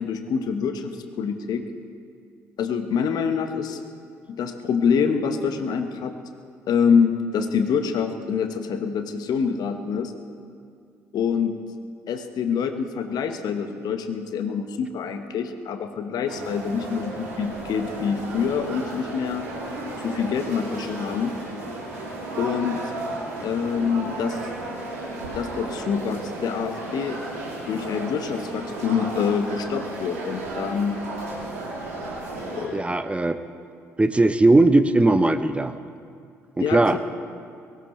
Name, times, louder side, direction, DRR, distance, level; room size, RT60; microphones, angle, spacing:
voice 1, 0.0-1.6 2.6-3.8 4.3-6.1 6.7-10.1 11.1-11.6 12.1-19.5 20.0-21.3 22.4-22.8 23.4-24.4 25.3-27.2 27.7-31.0 32.5-32.9 36.6-37.0, left 6 dB, 55° left, 7 dB, 1.2 m, -26 dB
sound 1, 16.3-32.7, right 2 dB, 80° right, 2.7 m, -34 dB
voice 2, 32.7-33.4 34.0-35.7 36.6-37.0, right 2 dB, 15° right, 11 dB, 0.8 m, -18 dB
23.0 x 15.5 x 3.2 m, 2.3 s
figure-of-eight pair, 45°, 8 cm